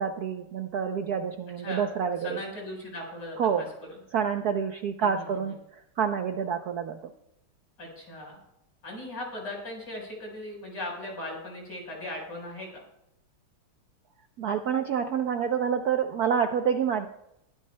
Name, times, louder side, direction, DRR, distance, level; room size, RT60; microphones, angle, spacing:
voice 1, 0.0-2.4 3.4-3.7 4.1-7.0 14.4-17.1, right 7 dB, 65° right, 6 dB, 1.0 m, -28 dB
voice 2, 2.2-3.7 5.0-5.5 7.8-8.4 8.8-12.8, left 1 dB, 55° left, -1 dB, 5.3 m, -38 dB
21.5 x 13.0 x 2.2 m, 0.82 s
omnidirectional pair, 2.3 m